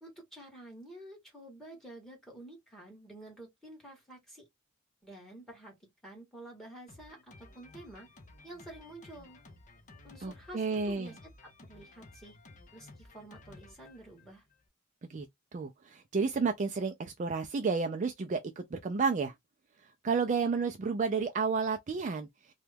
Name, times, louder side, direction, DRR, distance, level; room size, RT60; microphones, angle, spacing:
voice 1, 0.0-4.4 5.0-5.7 6.0-8.1 8.4-9.4 10.0-11.3 11.6-12.3 12.7-14.4, right 1 dB, ahead, 1.5 m, -50 dB
Drum kit, 6.9-14.7, left 2 dB, 35° left, 0.7 m, -55 dB
voice 2, 10.2-11.1 15.1-15.3 15.5-19.3 20.0-22.3, right 5 dB, 35° right, 0.4 m, -31 dB
2.9 x 2.3 x 3.3 m
head